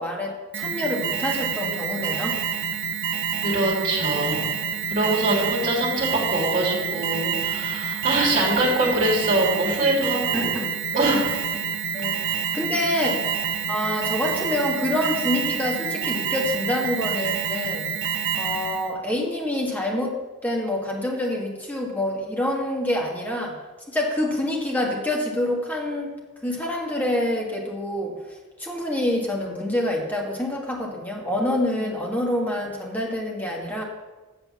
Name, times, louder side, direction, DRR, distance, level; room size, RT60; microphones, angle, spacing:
voice 1, 0.0-2.4 5.3-5.6 10.3-10.7 11.9-13.3 13.7-17.9 18.4-23.6 23.9-26.1 26.4-28.2 28.6-33.8, left 1 dB, 10° left, -1 dB, 1.7 m, -27 dB
Alarm, 0.5-18.9, right 7 dB, 55° right, 0.6 m, -28 dB
voice 2, 3.4-4.6 4.9-10.5 10.9-11.3, right 1 dB, 35° right, -3 dB, 2.9 m, -23 dB
8.4 x 6.7 x 7.1 m, 1.3 s
head